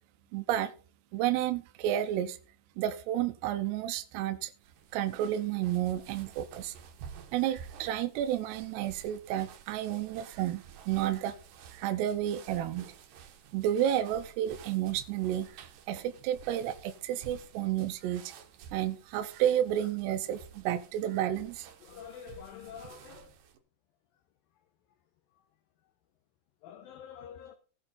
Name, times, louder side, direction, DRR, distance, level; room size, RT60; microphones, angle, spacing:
voice 1, 0.3-0.7 1.1-2.4 2.8-4.5 4.9-6.7 7.3-11.4 11.7-12.9 13.5-18.3 18.7-21.7, right 11 dB, 85° right, 2.8 m, -31 dB
sound 1, 4.6-23.6, right 7 dB, 70° right, 2.4 m, -52 dB
voice 2, 21.8-23.3 26.6-27.5, left 8 dB, 70° left, 2.3 m, -47 dB
17.5 x 6.3 x 4.1 m
omnidirectional pair, 4.8 m